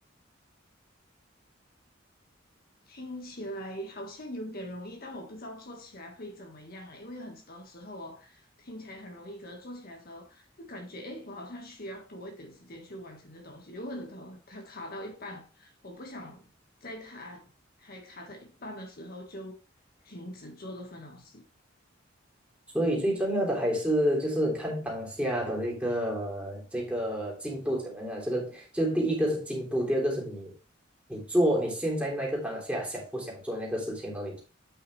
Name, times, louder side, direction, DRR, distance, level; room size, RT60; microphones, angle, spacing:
voice 1, 2.8-16.5 16.8-17.5 17.8-19.6 20.0-21.4, equal, 50° left, 1.5 m, -42 dB
voice 2, 22.7-30.5 31.1-34.4, equal, 5° right, 3.3 m, -29 dB
9.0 x 5.8 x 3.2 m
head